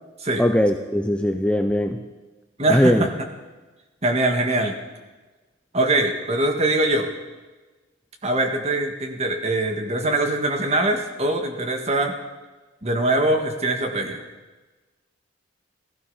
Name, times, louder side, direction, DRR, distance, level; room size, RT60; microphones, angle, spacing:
voice 1, 0.4-2.0 2.7-3.1, equal, 5° left, 5 dB, 0.5 m, -20 dB
voice 2, 2.6-3.1 4.0-4.7 5.7-7.1 8.2-12.1 12.8-14.2, right 2 dB, 35° right, 4 dB, 1.7 m, -22 dB
16.5 x 14.0 x 5.6 m, 1.2 s
head